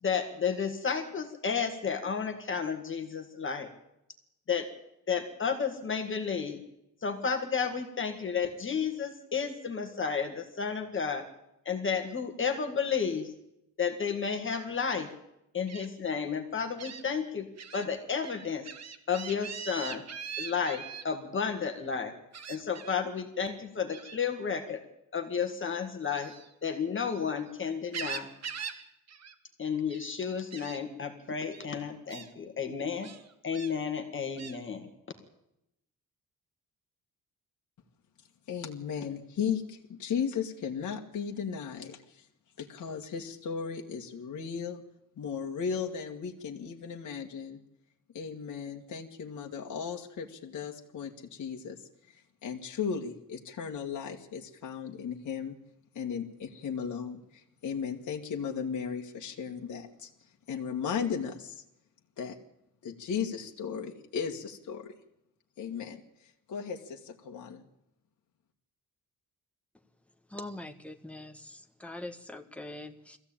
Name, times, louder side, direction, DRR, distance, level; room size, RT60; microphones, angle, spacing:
voice 1, 0.0-3.7 4.5-4.7 5.1-6.6 7.0-11.3 11.7-13.3 13.8-15.1 15.5-18.7 19.1-20.0 20.4-22.1 22.5-24.8 25.1-26.3 26.6-28.3 29.6-33.1 33.4-34.9, left 6 dB, 35° left, 5 dB, 2.1 m, -32 dB
Gull seagull, 15.7-15.9 16.8-17.0 17.6-17.8 18.2-21.0 22.3-23.0 23.9-24.2 26.1-27.3 27.7-28.8 29.1-29.3 29.7-30.1 30.5-30.8 31.5-31.7 32.1-32.3 33.0-33.7 34.4-34.6, right 7 dB, 50° right, 1.7 m, -41 dB
voice 2, 38.5-42.3 42.6-44.8 45.2-47.6 48.1-55.6 55.9-61.6 62.2-62.4 62.8-65.0 65.6-67.7, left 7 dB, 60° left, 1 dB, 1.8 m, -36 dB
voice 3, 70.3-73.2, left 1 dB, 5° left, 5 dB, 1.4 m, -43 dB
21.0 x 15.0 x 8.8 m, 0.84 s
cardioid pair, 145°, 33 cm